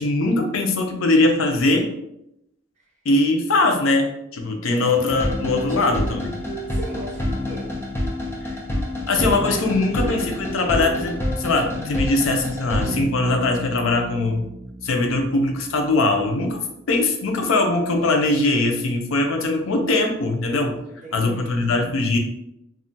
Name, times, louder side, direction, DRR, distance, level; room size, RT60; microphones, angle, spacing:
voice 1, 0.0-1.9 3.0-6.4 8.4-8.5 9.1-14.5 14.8-16.6 16.9-20.8 21.1-22.2, left 2 dB, 85° left, 4 dB, 0.5 m, -21 dB
sound 1, 4.7-13.0, left 1 dB, 15° left, 0.5 m, -27 dB
voice 2, 6.7-7.7 20.9-21.6, right 1 dB, 35° right, -1 dB, 0.7 m, -38 dB
Bass guitar, 12.8-16.5, right 2 dB, 90° right, 0.4 m, -36 dB
2.4 x 2.1 x 3.9 m, 0.82 s
head